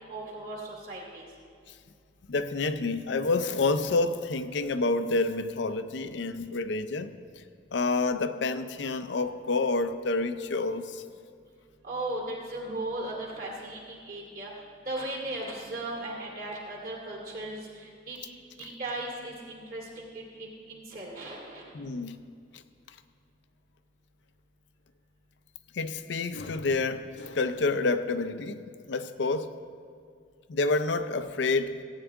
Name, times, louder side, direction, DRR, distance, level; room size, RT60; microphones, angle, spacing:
voice 1, 0.1-1.3 11.8-14.5 14.9-18.2 18.6-21.6, right 2 dB, 50° right, 2.3 m, -37 dB
voice 2, 2.3-7.1 7.7-11.0 21.7-22.2 22.5-22.6 25.7-29.5 30.5-31.8, left 3 dB, 65° left, 0.5 m, -28 dB
16.0 x 9.0 x 3.6 m
head